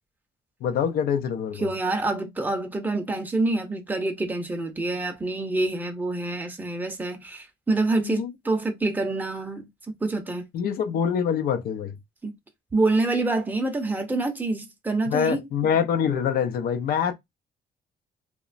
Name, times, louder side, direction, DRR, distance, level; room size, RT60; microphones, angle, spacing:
voice 1, 0.6-1.7 8.0-8.3 10.5-12.0 15.1-17.1, left 7 dB, 70° left, 0.5 m, -25 dB
voice 2, 1.6-9.7 10.0-10.5 12.2-12.3 12.7-15.5, right 2 dB, 10° right, 0.5 m, -26 dB
2.9 x 2.1 x 2.5 m
cardioid pair, 150°, 16 cm